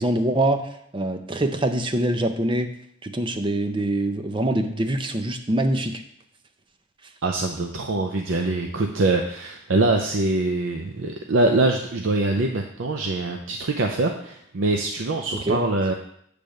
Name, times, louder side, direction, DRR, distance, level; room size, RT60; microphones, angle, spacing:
voice 1, 0.0-2.7 3.0-6.0 15.5-15.6, right 1 dB, 25° right, 7 dB, 0.6 m, -24 dB
voice 2, 7.2-15.9, right 2 dB, 70° right, 3 dB, 0.6 m, -23 dB
8.6 x 3.4 x 6.4 m, 0.71 s
head